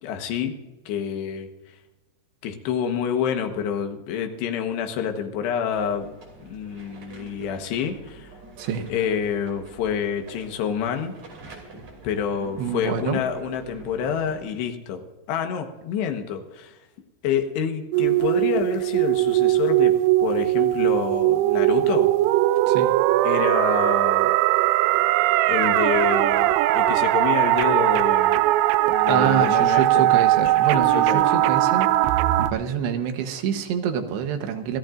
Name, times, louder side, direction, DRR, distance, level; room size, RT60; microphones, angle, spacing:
voice 1, 0.0-0.5 0.9-1.5 2.4-6.2 6.4-8.3 8.9-11.1 12.0-15.0 15.3-16.7 17.2-19.9 20.2-22.1 23.2-24.3 25.5-28.4 28.9-30.0 30.7-31.4, left 7 dB, 70° left, 6 dB, 3.2 m, -27 dB
sound 1, 5.7-14.4, right 3 dB, 40° right, 3.6 m, -45 dB
voice 2, 8.6-8.9 12.6-13.2 22.7-22.9 29.1-31.9 32.4-34.8, right 8 dB, 75° right, 7 dB, 3.0 m, -26 dB
sound 2, 17.9-32.5, right 15 dB, 90° right, 3.0 m, -20 dB
26.5 x 14.0 x 2.6 m, 1.1 s
omnidirectional pair, 5.3 m